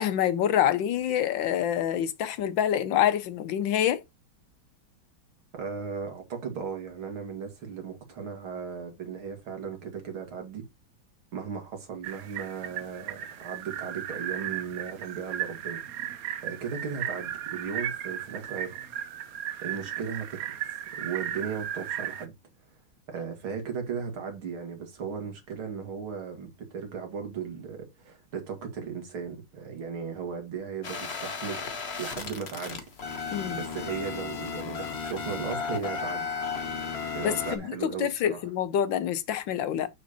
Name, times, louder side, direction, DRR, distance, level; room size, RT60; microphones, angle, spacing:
voice 1, 0.0-4.0 33.3-33.6 37.2-39.9, left 10 dB, 75° left, 1.4 m, -26 dB
voice 2, 5.6-10.6 11.3-15.8 16.4-18.9 19.6-20.5 21.0-22.3 23.1-32.9 33.5-36.3 37.1-38.4, right 6 dB, 85° right, 2.9 m, -36 dB
sound 1, 12.0-22.3, right 10 dB, 70° right, 0.8 m, -36 dB
sound 2, 30.8-37.6, left 5 dB, 40° left, 1.2 m, -34 dB
6.8 x 6.1 x 2.9 m
omnidirectional pair, 2.2 m